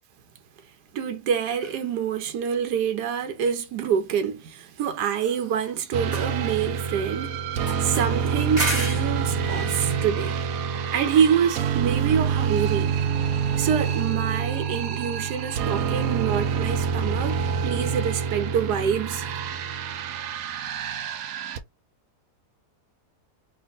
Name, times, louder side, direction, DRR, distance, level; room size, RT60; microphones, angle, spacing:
voice 1, 0.9-7.4 7.8-10.4 10.9-13.0 13.6-19.2, right 7 dB, 85° right, 1.3 m, -26 dB
sound 1, 1.6-1.8 5.0-5.8 6.0-7.1 7.7-9.2, right 2 dB, 25° right, 1.3 m, -33 dB
sound 2, 5.9-21.6, right 6 dB, 70° right, 1.0 m, -27 dB
3.5 x 2.5 x 3.7 m
omnidirectional pair, 1.7 m